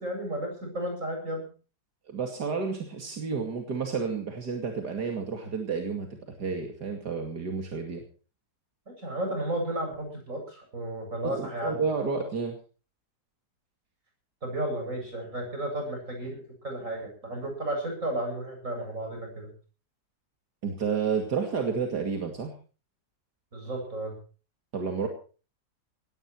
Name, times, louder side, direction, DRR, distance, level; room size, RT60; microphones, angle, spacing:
voice 1, 0.0-1.5 9.0-11.8 14.4-19.5 23.5-24.1, right 1 dB, 50° right, 2 dB, 8.6 m, -33 dB
voice 2, 2.1-8.0 11.2-12.6 20.6-22.5 24.7-25.1, right 5 dB, 85° right, 3 dB, 3.0 m, -31 dB
19.0 x 16.0 x 4.6 m, 0.37 s
omnidirectional pair, 1.7 m